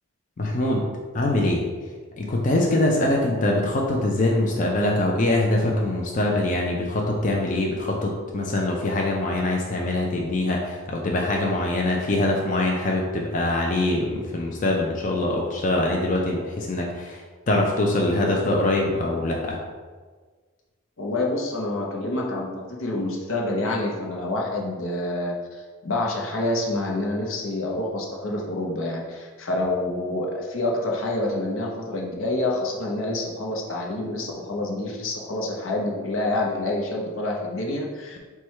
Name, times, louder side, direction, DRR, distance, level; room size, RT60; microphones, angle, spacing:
voice 1, 0.4-0.8 1.1-1.7 2.2-19.6, left 1 dB, 40° left, -1 dB, 0.4 m, -23 dB
voice 2, 21.0-38.2, left 2 dB, 80° left, -1 dB, 0.7 m, -27 dB
4.6 x 2.3 x 4.3 m, 1.5 s
head